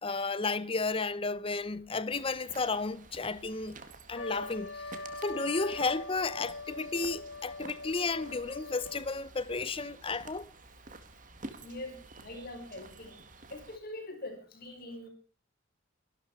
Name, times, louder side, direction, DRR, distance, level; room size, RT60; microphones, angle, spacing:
voice 1, 0.0-3.8 4.1-10.5, left 3 dB, 30° left, 0.8 m, -33 dB
sound 1, 2.1-13.8, right 3 dB, 40° right, 2.1 m, -51 dB
Trumpet, 4.1-9.2, left 2 dB, 65° left, 1.8 m, -42 dB
voice 2, 11.6-13.2 13.5-15.1, left 1 dB, 50° left, 6.0 m, -43 dB
24.0 x 12.5 x 4.8 m
head